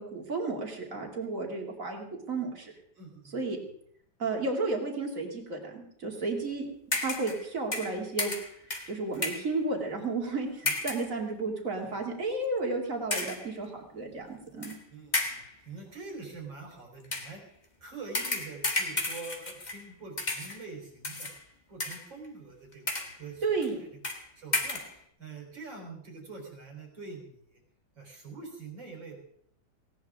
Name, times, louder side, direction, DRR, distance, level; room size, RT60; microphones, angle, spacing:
voice 1, 0.0-2.7 3.3-3.6 4.2-6.6 6.9-8.3 8.9-14.8 23.4-23.8, right 3 dB, 40° right, 1 dB, 3.0 m, -33 dB
voice 2, 2.9-3.5 10.6-10.8 11.8-12.0 14.9-17.5 17.8-21.3 21.7-23.4 23.8-23.9 24.4-27.6 28.0-29.2, right 4 dB, 70° right, 1 dB, 4.7 m, -45 dB
sound 1, 6.9-7.5 7.7-9.5 10.7-11.1 11.8-12.0 13.1-13.5 14.6-14.8 15.1-15.6 17.0-17.4 18.1-19.9 20.2-20.7 21.0-21.4 21.8-22.3 22.7-23.2 23.6-23.7 24.0-24.3 24.5-24.9, left 2 dB, 25° left, 1.8 m, -33 dB
18.5 x 17.5 x 3.7 m, 0.68 s
omnidirectional pair, 2.1 m